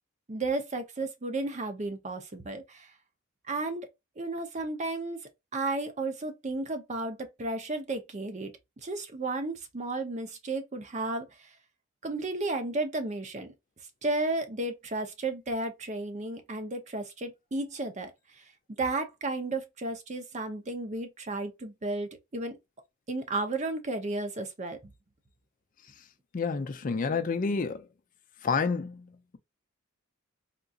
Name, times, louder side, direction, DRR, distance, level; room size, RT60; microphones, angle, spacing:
voice 1, 0.3-2.9 3.5-3.9 4.2-5.2 5.5-8.5 8.8-11.3 12.0-13.5 14.0-18.1 18.8-22.6 23.1-24.8, right 2 dB, 35° right, 0.6 m, -33 dB
voice 2, 26.3-27.9 28.4-29.4, left 5 dB, 40° left, 0.4 m, -29 dB
3.6 x 2.7 x 2.3 m
head